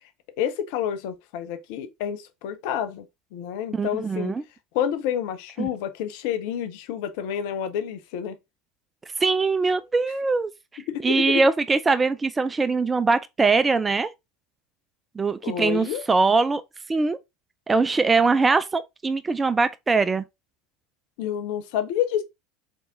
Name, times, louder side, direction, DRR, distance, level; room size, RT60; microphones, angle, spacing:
voice 1, 0.4-3.0 3.3-4.3 4.7-8.3 10.9-11.4 15.4-16.0 21.2-22.2, left 9 dB, 55° left, 0.6 m, -29 dB
voice 2, 3.7-4.4 5.6-5.7 9.2-10.5 11.0-14.1 15.2-16.6 16.9-17.2 17.7-20.2, right 4 dB, 20° right, 0.3 m, -22 dB
4.0 x 3.4 x 2.6 m
figure-of-eight pair, 75°, 0 cm